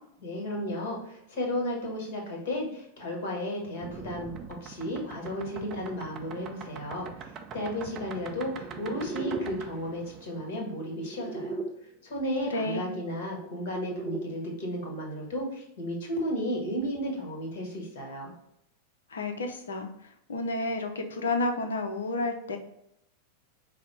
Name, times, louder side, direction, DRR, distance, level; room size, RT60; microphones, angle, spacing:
voice 1, 0.2-7.3 7.5-11.6 12.0-18.3, equal, 50° left, 0 dB, 1.5 m, -33 dB
sound 1, 3.8-11.7 13.0-14.3, right 4 dB, 30° right, 0.4 m, -40 dB
voice 2, 12.5-13.0 19.1-19.9 20.3-22.6, left 2 dB, 65° left, 6 dB, 0.6 m, -30 dB
5.1 x 2.1 x 4.2 m, 0.78 s
figure-of-eight pair, 90°, 0 cm